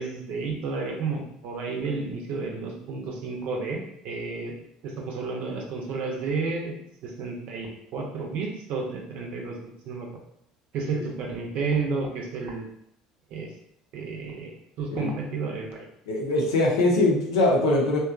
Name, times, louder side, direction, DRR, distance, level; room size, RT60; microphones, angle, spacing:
voice 1, 0.0-4.5 4.8-6.7 7.0-9.6 9.9-10.1 10.7-12.7 13.3-13.5 13.9-14.5 14.8-15.9, right 4 dB, 60° right, 1 dB, 0.6 m, -31 dB
voice 2, 16.1-18.0, left 2 dB, 80° left, -2 dB, 0.6 m, -22 dB
2.8 x 2.3 x 2.4 m, 0.74 s
hypercardioid pair, 65°, 3 cm